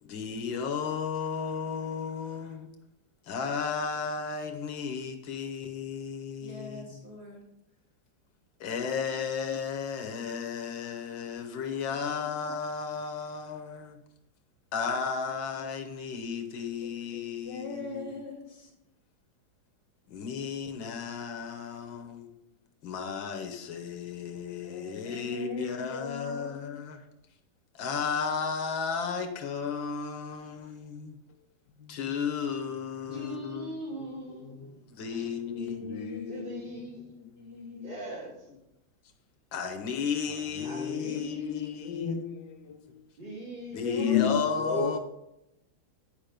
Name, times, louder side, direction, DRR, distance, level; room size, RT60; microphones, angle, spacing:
voice 1, 0.0-2.7 3.3-6.8 8.6-14.0 14.7-18.1 20.1-22.3 22.8-27.0 27.8-31.2 31.9-33.7 34.9-35.9 39.5-42.2 43.7-45.0, left 6 dB, 85° left, 1.8 m, -34 dB
voice 2, 6.4-7.4 9.0-9.2 11.9-12.3 16.8-16.9 17.4-18.7 24.6-26.8 35.5-36.9 37.4-37.9, left 4 dB, 35° left, 2.0 m, -42 dB
voice 3, 31.8-32.2 33.1-33.3 34.3-34.7 35.8-36.6 37.7-37.9 40.3-43.0 44.0-45.0, left 8 dB, 70° left, 1.2 m, -33 dB
voice 4, 33.1-34.8 35.1-35.3 36.3-37.3 37.8-38.6 40.6-41.9 43.2-44.8, right 1 dB, 80° right, 3.9 m, -41 dB
10.5 x 5.2 x 5.1 m
omnidirectional pair, 2.1 m